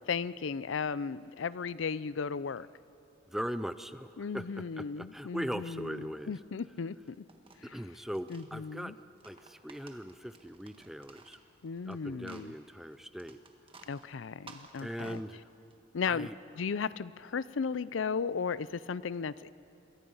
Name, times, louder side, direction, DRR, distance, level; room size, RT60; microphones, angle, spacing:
voice 1, 0.1-2.7 4.2-7.2 7.6-7.8 8.3-8.9 11.6-12.5 13.9-15.2 15.9-16.3 16.6-19.5, left 5 dB, 75° left, 0.5 m, -35 dB
voice 2, 3.3-4.5 4.8-6.3 7.6-8.9 9.2-11.4 11.8-13.4 14.8-15.5 16.1-16.3, equal, ahead, 0.5 m, -40 dB
sound 1, 6.9-8.5 9.1-11.9 12.2-15.7, right 4 dB, 30° right, 1.6 m, -55 dB
27.0 x 22.0 x 5.6 m
head